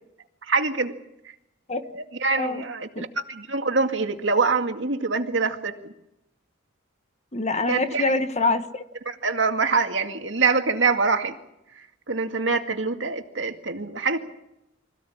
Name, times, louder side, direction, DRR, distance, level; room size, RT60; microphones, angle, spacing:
voice 1, 0.5-0.9 1.9-5.9 7.7-8.1 9.1-11.3 12.1-14.2, right 4 dB, 65° right, 5 dB, 2.2 m, -25 dB
voice 2, 7.3-8.8, left 2 dB, 35° left, 9 dB, 1.4 m, -25 dB
25.5 x 16.0 x 8.7 m, 0.85 s
head